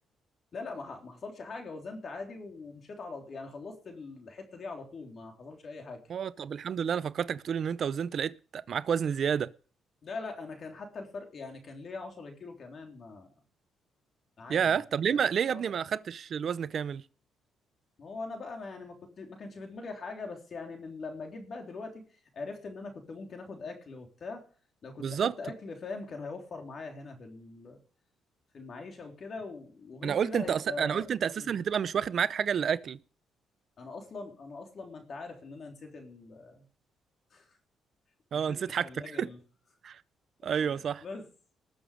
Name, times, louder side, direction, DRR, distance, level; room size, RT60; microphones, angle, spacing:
voice 1, 0.5-6.0 10.0-13.3 14.4-14.8 15.1-15.7 18.0-24.5 24.8-27.8 28.5-31.1 31.4-31.5 33.8-36.7 37.3-37.6 38.3-39.4 40.6-41.3, left 3 dB, 50° left, 3.5 m, -42 dB
voice 2, 6.1-9.5 14.5-17.0 25.0-25.3 30.0-33.0 38.3-38.9 39.2-39.3 39.8-40.0 40.4-41.0, right 7 dB, 55° right, 0.6 m, -29 dB
20.0 x 6.9 x 5.1 m
cardioid pair, 90°, 0 cm